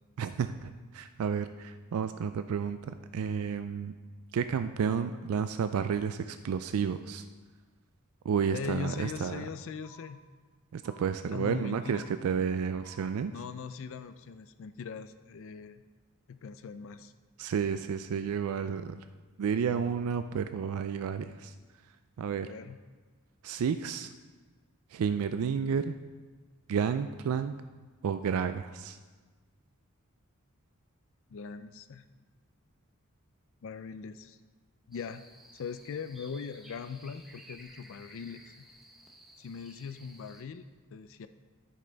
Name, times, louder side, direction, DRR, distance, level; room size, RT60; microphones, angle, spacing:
voice 1, 0.2-3.9 4.3-7.3 8.2-9.5 10.7-13.3 17.4-19.0 19.4-21.5 22.2-22.5 23.4-24.1 24.9-26.0 26.7-27.6 28.0-29.0, right 6 dB, 75° right, 10 dB, 0.3 m, -31 dB
voice 2, 8.5-10.2 11.3-12.0 13.3-15.8 16.3-17.1 22.4-22.8 31.3-32.0 33.6-34.4 34.9-35.2 35.5-38.4 39.4-40.6 40.9-41.3, left 6 dB, 65° left, 11 dB, 0.4 m, -40 dB
sound 1, 8.8-9.5 9.8-10.5 10.8-11.5 11.8-12.5 12.8-13.5, equal, 15° left, 1.5 m, -56 dB
sound 2, 34.9-40.4, equal, ahead, 1.0 m, -55 dB
13.5 x 5.5 x 3.9 m, 1.4 s
head